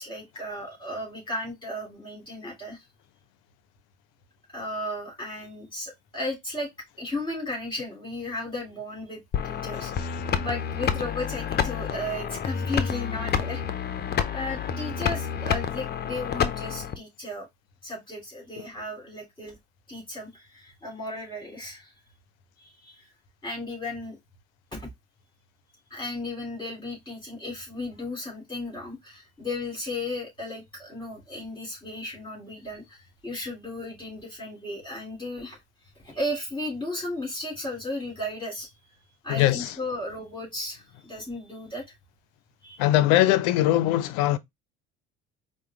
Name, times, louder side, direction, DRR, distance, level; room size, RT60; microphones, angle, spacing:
voice 1, 0.0-2.8 4.5-6.7 7.0-10.1 10.4-13.6 14.3-17.5 17.8-19.6 19.9-21.9 22.6-23.0 23.4-24.2 24.7-24.9 25.9-35.6 36.0-38.7 39.2-41.8 42.6-42.8, left 1 dB, 15° left, 2.8 m, -35 dB
sound 1, 9.3-16.9, left 7 dB, 35° left, 0.6 m, -29 dB
voice 2, 39.3-39.8 42.8-44.4, left 14 dB, 75° left, 0.5 m, -21 dB
4.8 x 2.2 x 2.9 m
supercardioid pair, 80°, 29 cm